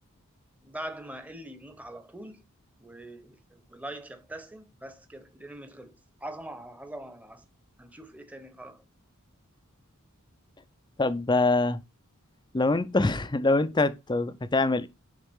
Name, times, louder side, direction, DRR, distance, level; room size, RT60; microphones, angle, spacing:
voice 1, 0.6-2.5 2.8-7.4 7.8-8.8, right 1 dB, 5° right, 0.9 m, -43 dB
voice 2, 11.0-11.8 12.5-14.9, left 2 dB, 20° left, 0.5 m, -24 dB
9.9 x 3.7 x 3.6 m
head